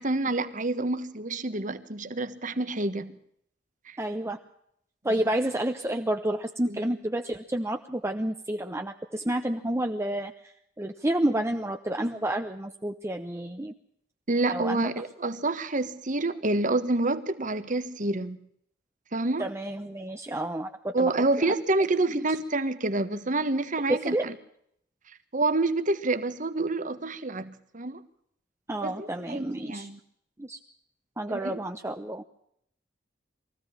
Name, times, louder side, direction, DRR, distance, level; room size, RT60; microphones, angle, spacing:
voice 1, 0.0-3.2 3.9-4.0 5.0-5.1 6.7-7.0 14.3-18.4 19.1-19.5 20.9-24.3 25.3-28.0 28.8-30.0 31.3-31.6, right 2 dB, 45° right, 1.5 m, -28 dB
voice 2, 4.0-4.4 5.0-10.3 10.8-13.7 14.5-14.9 19.4-21.1 22.1-22.2 23.9-24.2 28.7-29.9 30.4-30.6 31.2-32.2, right 1 dB, 15° right, 0.9 m, -30 dB
23.0 x 15.5 x 7.3 m
head